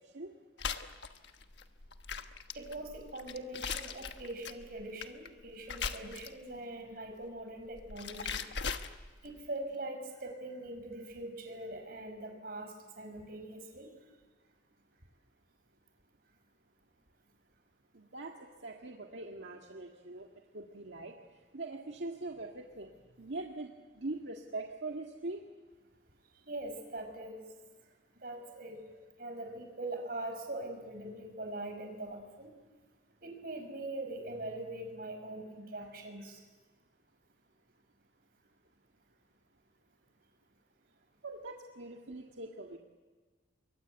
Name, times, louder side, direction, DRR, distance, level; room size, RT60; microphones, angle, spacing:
voice 1, 0.0-0.3 17.9-20.3 20.5-21.2 21.5-25.4 41.2-42.8, right 2 dB, 75° right, 1 dB, 1.8 m, -42 dB
sound 1, 0.6-6.5 7.6-9.4, left 6 dB, 70° left, 1.3 m, -40 dB
voice 2, 2.5-8.4 9.2-13.9 26.5-27.4 28.2-32.5 33.2-36.4, right 2 dB, 50° right, 5 dB, 5.3 m, -42 dB
27.5 x 23.5 x 8.1 m, 1.4 s
head